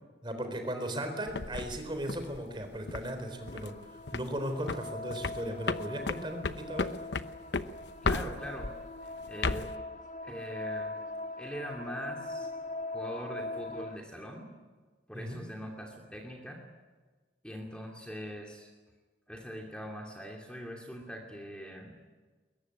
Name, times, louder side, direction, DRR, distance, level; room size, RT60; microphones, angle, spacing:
voice 1, 0.2-7.0 15.1-15.4, equal, 25° right, 6 dB, 3.9 m, -37 dB
sound 1, 1.3-3.1 3.5-3.8 4.1-4.4 4.7-8.8 9.2-9.7, left 3 dB, 80° left, 0.9 m, -34 dB
sound 2, 3.1-14.0, left 2 dB, 45° left, 1.8 m, -41 dB
voice 2, 8.0-8.7 9.0-9.7 10.2-11.0 11.4-12.5 12.9-14.5 15.1-16.6 17.4-18.7 19.3-22.0, equal, 5° left, 0 dB, 2.7 m, -42 dB
22.0 x 21.5 x 9.9 m, 1.3 s
head